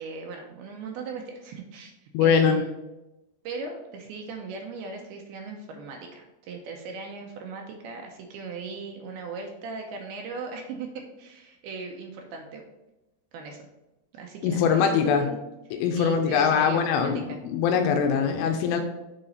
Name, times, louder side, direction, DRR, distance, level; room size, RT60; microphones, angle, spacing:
voice 1, 0.0-2.7 3.4-12.6 13.3-13.7 14.1-15.4 16.0-17.4, right 4 dB, 80° right, 2 dB, 2.3 m, -38 dB
voice 2, 2.1-2.6 14.4-15.3 15.8-18.8, left 6 dB, 80° left, 5 dB, 2.7 m, -22 dB
8.6 x 4.0 x 4.0 m, 0.98 s
omnidirectional pair, 5.2 m